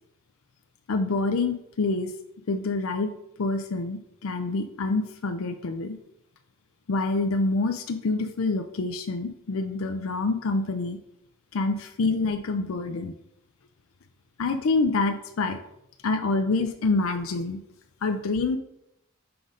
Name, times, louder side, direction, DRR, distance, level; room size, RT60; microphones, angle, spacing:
voice 1, 0.9-2.1 2.5-3.1 3.4-6.0 6.9-11.0 11.5-13.2 14.4-15.6 16.0-17.6 18.0-18.6, left 3 dB, 85° left, 7 dB, 0.5 m, -26 dB
6.0 x 3.7 x 5.0 m, 0.81 s
head